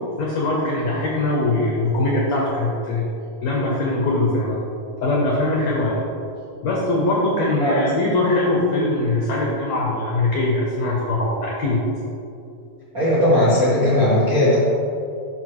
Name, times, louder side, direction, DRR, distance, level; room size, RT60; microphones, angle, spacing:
voice 1, 0.2-3.0 3.4-4.6 5.0-6.0 6.6-11.8, left 2 dB, 75° left, -3 dB, 1.6 m, -21 dB
voice 2, 12.9-14.6, left 1 dB, 85° right, -9 dB, 0.8 m, -17 dB
12.0 x 4.6 x 3.1 m, 2.6 s
omnidirectional pair, 4.3 m